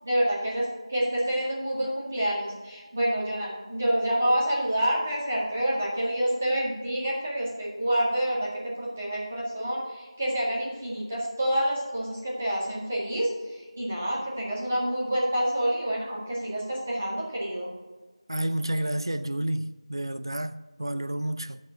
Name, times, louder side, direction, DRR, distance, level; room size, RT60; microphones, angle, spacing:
voice 1, 0.0-17.7, right 1 dB, 20° right, 1.8 m, -28 dB
voice 2, 18.3-21.6, right 1 dB, 45° right, 0.5 m, -30 dB
14.0 x 5.4 x 3.8 m
figure-of-eight pair, 175°, 3 cm